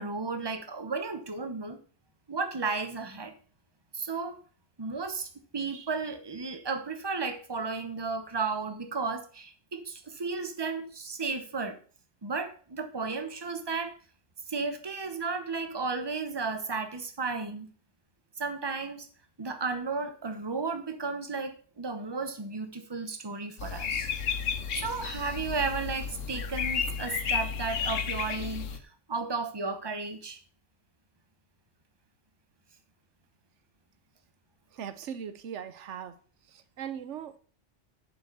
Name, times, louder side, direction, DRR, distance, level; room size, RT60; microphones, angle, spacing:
voice 1, 0.0-1.8 2.3-3.3 3.9-4.4 4.8-11.8 12.2-13.9 14.5-17.7 18.4-19.1 19.4-24.1 24.7-28.8 29.1-30.4, right 4 dB, 20° right, 1.0 m, -34 dB
sound 1, 23.6-28.8, left 6 dB, 85° left, 1.3 m, -32 dB
voice 2, 34.7-36.2 36.5-37.4, right 8 dB, 75° right, 1.1 m, -39 dB
7.9 x 5.9 x 6.8 m
omnidirectional pair, 1.3 m